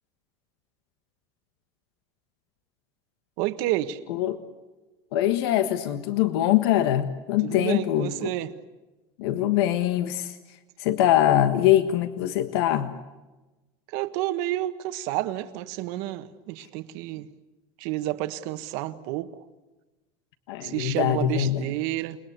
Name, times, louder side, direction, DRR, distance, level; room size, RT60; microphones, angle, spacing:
voice 1, 3.4-4.0 7.4-8.5 13.9-17.3 17.8-19.4 20.6-22.2, right 15 dB, 60° right, 1.5 m, -30 dB
voice 2, 5.1-8.1 9.2-10.4 10.8-12.9 20.5-21.7, left 12 dB, 90° left, 1.5 m, -23 dB
29.5 x 21.0 x 8.2 m
cardioid pair, 170°, 13 cm